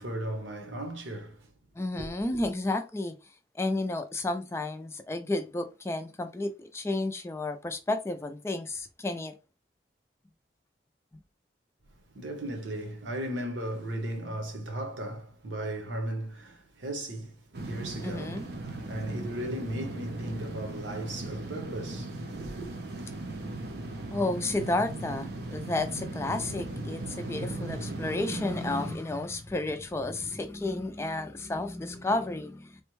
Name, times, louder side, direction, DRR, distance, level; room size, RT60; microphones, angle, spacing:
voice 1, 0.0-1.5 12.1-22.7, right 1 dB, 80° right, 0.9 m, -36 dB
voice 2, 1.8-3.1 3.6-9.3 18.0-18.5 24.1-32.8, left 2 dB, 15° left, 0.3 m, -32 dB
sound 1, 17.5-29.0, right 2 dB, 60° right, 0.6 m, -38 dB
3.4 x 2.1 x 3.0 m
head